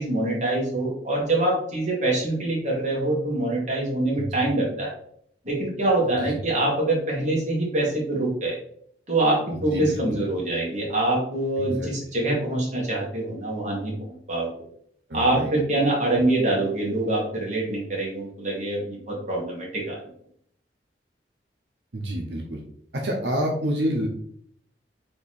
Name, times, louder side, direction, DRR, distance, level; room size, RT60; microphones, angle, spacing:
voice 1, 0.0-4.9 5.4-8.6 9.1-13.9 14.3-14.5 15.1-20.0, right 2 dB, 40° right, -3 dB, 1.6 m, -25 dB
voice 2, 9.5-10.2 11.6-11.9 15.1-15.5 15.8-15.9 21.9-22.6 23.0-24.1, equal, 85° right, 0 dB, 0.8 m, -28 dB
4.3 x 2.9 x 4.1 m, 0.65 s
head